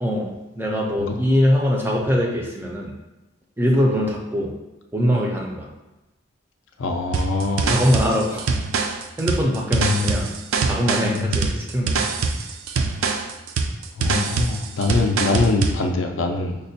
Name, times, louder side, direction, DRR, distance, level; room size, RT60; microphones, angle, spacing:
voice 1, 0.0-2.9 3.6-4.5 4.9-5.7 7.4-8.5 9.2-12.1 14.0-14.3, equal, 10° right, -1 dB, 0.4 m, -22 dB
voice 2, 6.8-7.8 9.7-10.2 11.1-11.5 14.0-16.6, left 3 dB, 65° left, 4 dB, 0.4 m, -23 dB
sound 1, 7.1-15.8, right 4 dB, 80° right, 0.3 m, -24 dB
5.1 x 2.1 x 2.7 m, 1.0 s
head